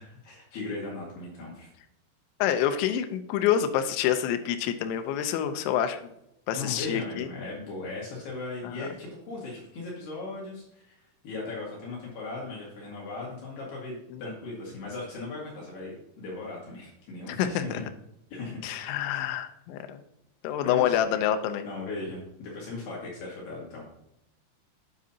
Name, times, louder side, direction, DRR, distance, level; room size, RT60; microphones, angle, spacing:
voice 1, 0.0-1.7 6.5-17.8 18.3-18.6 19.1-19.3 20.6-21.0 21.6-23.8, left 3 dB, 60° left, -4 dB, 3.4 m, -38 dB
voice 2, 2.4-6.0 6.5-7.3 8.6-8.9 14.1-14.2 17.3-17.8 18.6-20.0 20.4-21.7, left 10 dB, 80° left, 8 dB, 2.9 m, -27 dB
9.0 x 7.6 x 2.8 m, 0.80 s
omnidirectional pair, 5.8 m